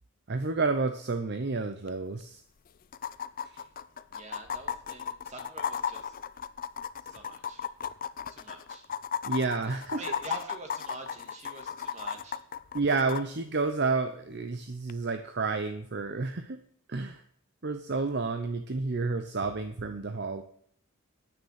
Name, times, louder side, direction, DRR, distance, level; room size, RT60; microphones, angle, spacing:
voice 1, 0.3-2.4 9.2-10.0 12.7-16.6 16.9-17.2 17.6-20.4, right 3 dB, 50° right, 8 dB, 0.7 m, -30 dB
sound 1, 1.9-2.0 2.2-2.3 2.9-13.2 14.9-15.0, left 7 dB, 40° left, 0.4 m, -35 dB
voice 2, 4.1-6.2 7.0-7.7 8.3-8.9 9.9-12.4, right 2 dB, 30° right, 4 dB, 1.9 m, -45 dB
9.6 x 9.0 x 6.5 m, 0.64 s
head